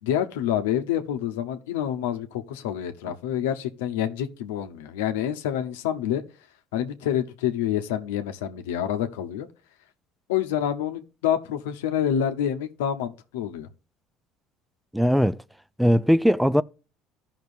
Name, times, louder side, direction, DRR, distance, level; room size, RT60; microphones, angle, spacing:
voice 1, 0.0-6.2 6.7-9.5 10.3-13.7, left 10 dB, 85° left, 0.8 m, -27 dB
voice 2, 14.9-15.4 15.8-16.6, equal, ahead, 0.4 m, -19 dB
15.0 x 5.9 x 2.6 m
hypercardioid pair, 75°, 0 cm